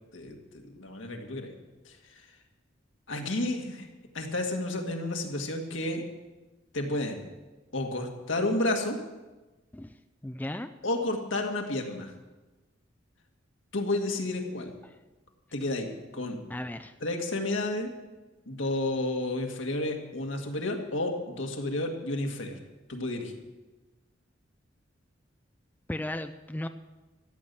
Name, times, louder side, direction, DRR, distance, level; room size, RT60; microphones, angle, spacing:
voice 1, 0.1-1.5 1.8-1.9 3.1-3.9 4.1-6.0 6.7-7.2 7.7-9.0 10.8-12.1 13.7-14.7 15.5-15.9 16.1-16.4 17.0-17.9 18.5-22.6 22.9-23.3, left 2 dB, 75° left, 3 dB, 2.0 m, -31 dB
voice 2, 10.2-10.7 14.8-15.0 16.5-16.9 25.9-26.7, left 1 dB, 10° left, 10 dB, 0.4 m, -35 dB
13.5 x 10.5 x 6.9 m, 1.2 s
head